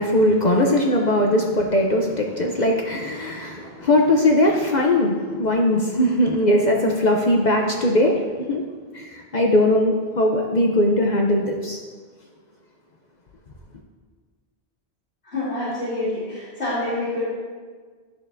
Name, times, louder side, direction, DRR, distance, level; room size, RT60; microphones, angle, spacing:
voice 1, 0.0-8.2 8.5-8.6 8.9-11.8, left 1 dB, 50° left, 1 dB, 0.7 m, -20 dB
voice 2, 15.2-17.2, left 2 dB, 80° left, -11 dB, 2.4 m, -27 dB
11.0 x 6.4 x 2.6 m, 1.5 s
omnidirectional pair, 1.1 m